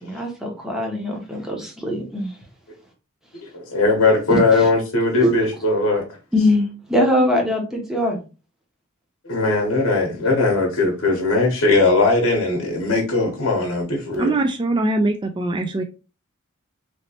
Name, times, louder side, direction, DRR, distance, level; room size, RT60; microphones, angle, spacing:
voice 1, 0.0-2.3 4.3-4.4 5.2-5.3 6.3-8.2, left 1 dB, 5° right, 0.9 m, -21 dB
voice 2, 3.4-6.0 9.2-14.3, left 3 dB, 65° left, 0.9 m, -19 dB
voice 3, 14.2-15.8, right 2 dB, 20° right, 0.3 m, -22 dB
3.1 x 2.8 x 2.8 m
head